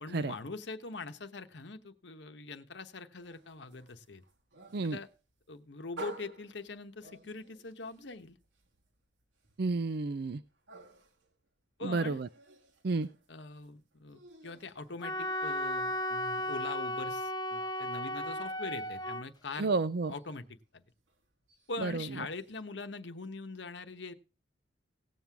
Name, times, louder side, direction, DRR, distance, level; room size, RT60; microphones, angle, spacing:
voice 1, 0.0-4.2 4.9-5.1 5.5-8.4 11.8-12.2 13.3-19.7 20.1-20.4 20.7-20.8 21.7-24.1, left 3 dB, 70° left, 9 dB, 1.0 m, -43 dB
sound 1, 3.2-15.7 16.0-22.6, right 4 dB, 85° right, 1.7 m, -54 dB
voice 2, 9.6-10.4 11.8-12.3 12.8-13.1 19.6-20.1 21.8-22.3, right 3 dB, 55° right, 14 dB, 0.5 m, -31 dB
Wind instrument woodwind instrument, 15.0-19.2, left 1 dB, 20° left, 0.7 m, -35 dB
17.5 x 7.5 x 3.5 m, 0.31 s
head